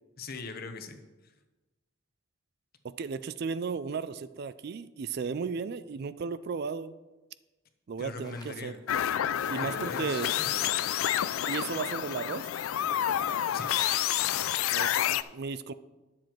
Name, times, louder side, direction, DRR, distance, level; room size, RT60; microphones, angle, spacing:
voice 1, 0.2-1.0 1.2-1.3 8.0-8.8 9.4-10.7 13.5-13.7, left 3 dB, 45° left, 7 dB, 0.9 m, -41 dB
voice 2, 2.8-6.9 7.9-8.7 9.5-10.3 11.5-12.5 14.7-15.7, right 5 dB, 50° right, 14 dB, 0.3 m, -35 dB
sound 1, 8.2-8.7 9.0-14.0, left 3 dB, 20° left, 0.8 m, -49 dB
sound 2, 8.9-15.2, left 11 dB, 85° left, 0.3 m, -29 dB
10.5 x 7.3 x 4.5 m, 1.1 s
head